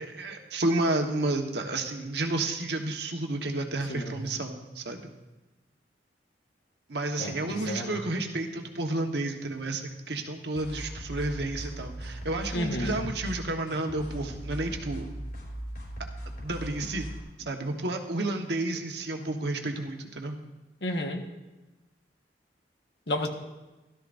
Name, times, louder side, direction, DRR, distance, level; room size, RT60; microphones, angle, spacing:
voice 1, 0.0-5.1 6.9-15.1 16.4-17.1 17.4-20.4, right 2 dB, 70° right, 3 dB, 1.3 m, -31 dB
voice 2, 7.2-8.0 12.5-13.0 20.8-21.2 23.1-23.3, left 1 dB, 70° left, 3 dB, 1.4 m, -31 dB
sound 1, 10.5-17.2, right 1 dB, 55° left, 4.1 m, -39 dB
16.5 x 12.5 x 2.6 m, 1.1 s
head